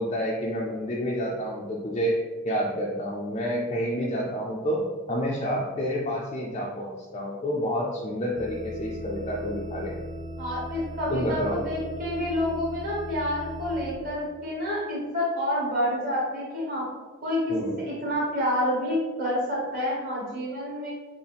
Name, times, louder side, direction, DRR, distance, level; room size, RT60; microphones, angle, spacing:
voice 1, 0.0-2.1 2.4-4.8 5.1-10.0 11.1-11.6 17.5-17.8, equal, 30° left, -4 dB, 0.4 m, -29 dB
sound 1, 8.3-13.9, equal, 10° right, 0.7 m, -38 dB
voice 2, 10.4-16.9 17.2-20.9, left 1 dB, 40° right, -6 dB, 1.4 m, -28 dB
4.7 x 2.0 x 3.3 m, 1.4 s
head